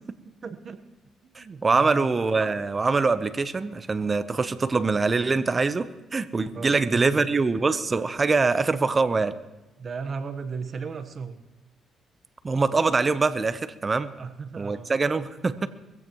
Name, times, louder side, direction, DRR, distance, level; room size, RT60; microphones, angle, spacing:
voice 1, 0.4-0.8 1.2-2.1 6.5-7.3 9.8-11.4 14.1-14.9, right 5 dB, 45° right, 10 dB, 1.2 m, -36 dB
voice 2, 1.4-9.3 12.4-14.1 14.6-15.7, right 4 dB, 30° right, 13 dB, 0.8 m, -24 dB
22.0 x 15.5 x 3.1 m, 1.1 s
cardioid pair, 90°, 0 cm